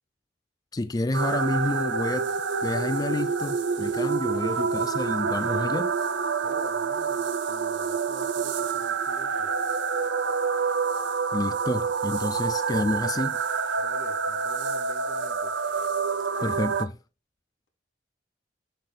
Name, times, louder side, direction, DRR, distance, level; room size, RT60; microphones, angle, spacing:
voice 1, 0.7-2.3 2.6-5.9 11.3-13.4 16.4-17.0, left 2 dB, 20° left, 0.4 m, -29 dB
sound 1, 1.1-16.9, right 5 dB, 65° right, 0.6 m, -27 dB
voice 2, 6.4-9.5 13.8-15.6, equal, 85° left, 2.7 m, -47 dB
7.5 x 6.7 x 2.2 m
head